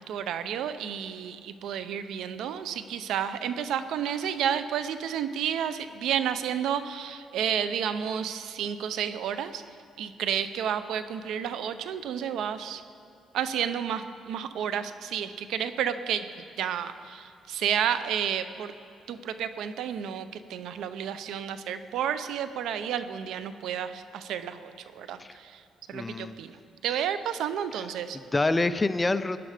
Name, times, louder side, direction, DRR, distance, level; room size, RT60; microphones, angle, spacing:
voice 1, 0.0-9.6 10.0-12.8 13.3-16.3 16.6-18.7 19.1-25.6 25.9-26.6 26.8-28.2, right 9 dB, 80° right, 12 dB, 0.6 m, -31 dB
voice 2, 25.9-26.4 26.9-27.1 27.7-27.8 28.1-29.4, left 2 dB, 20° left, 12 dB, 0.5 m, -27 dB
17.5 x 11.0 x 5.0 m, 2.6 s
cardioid pair, 90°, 0 cm